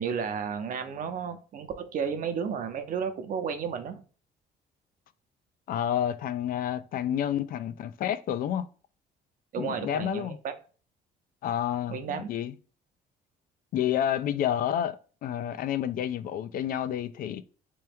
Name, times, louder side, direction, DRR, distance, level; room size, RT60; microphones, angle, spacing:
voice 1, 0.0-4.0 9.5-10.5 11.9-12.3, right 6 dB, 55° right, 0.7 m, -32 dB
voice 2, 5.7-8.7 9.6-10.4 11.4-12.5 13.7-17.4, left 10 dB, 55° left, 0.4 m, -29 dB
3.3 x 3.0 x 3.4 m
cardioid pair, 110°, 17 cm